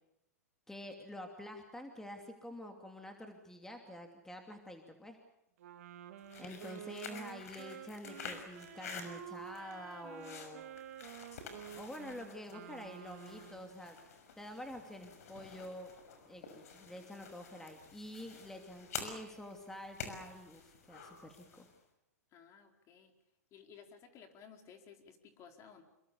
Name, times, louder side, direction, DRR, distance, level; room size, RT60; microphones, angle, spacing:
voice 1, 0.7-5.2 6.4-10.6 11.7-14.0 14.4-15.9 16.3-21.6, left 1 dB, 5° left, 4 dB, 2.8 m, -48 dB
Wind instrument woodwind instrument, 5.6-13.8, right 10 dB, 65° right, 3.3 m, -50 dB
sound 1, 6.2-21.8, left 6 dB, 70° left, 6.1 m, -50 dB
voice 2, 22.3-23.1 23.5-25.8, left 7 dB, 35° left, 5 dB, 4.5 m, -56 dB
27.5 x 23.0 x 7.1 m, 0.86 s
hypercardioid pair, 115°, 9 cm